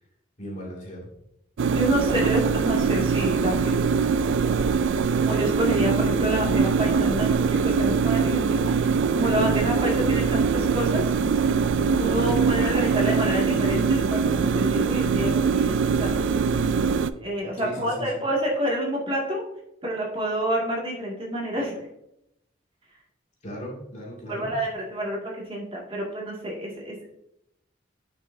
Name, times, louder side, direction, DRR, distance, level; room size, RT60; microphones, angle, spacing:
voice 1, 0.4-1.1 2.0-2.4 12.2-12.6 17.6-18.3 23.4-24.5, equal, 40° left, -3 dB, 2.4 m, -38 dB
sound 1, 1.6-17.1, right 5 dB, 75° right, 0.4 m, -22 dB
voice 2, 1.7-3.8 5.2-11.1 11.9-16.1 17.2-19.4 19.8-21.9 24.3-27.0, equal, 30° right, -3 dB, 2.2 m, -28 dB
10.0 x 5.9 x 2.7 m, 0.79 s
head